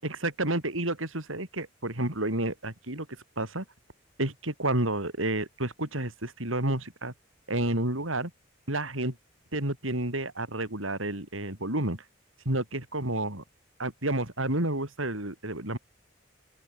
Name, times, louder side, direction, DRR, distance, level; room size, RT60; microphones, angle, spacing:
voice 1, 0.0-3.1 3.4-3.6 4.2-7.1 7.5-8.3 8.7-9.1 9.5-12.0 12.4-13.4 13.8-15.8, right 1 dB, 85° right, 6.8 m, -30 dB
open air
head